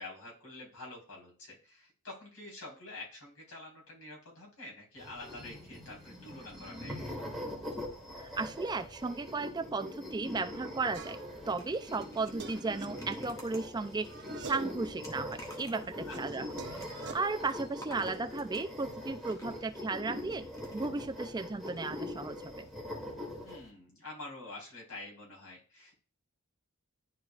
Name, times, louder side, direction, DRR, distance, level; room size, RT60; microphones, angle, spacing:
voice 1, 0.0-7.3 16.1-16.5 23.4-26.0, left 2 dB, 85° left, -3 dB, 4.0 m, -47 dB
sound 1, 5.0-23.6, left 1 dB, ahead, 2.1 m, -43 dB
voice 2, 8.2-11.2 11.5-14.1 14.4-16.5 16.9-20.5 20.7-22.7, right 3 dB, 20° right, 10 dB, 0.3 m, -35 dB
sound 2, 10.9-11.5 11.9-13.8 14.1-14.9 15.3-17.1, right 4 dB, 50° right, 0.8 m, -46 dB
sound 3, 11.1-19.8 20.5-21.3 21.6-21.8 22.0-22.1, equal, 15° left, 1.3 m, -53 dB
11.0 x 4.7 x 2.4 m, 0.38 s
head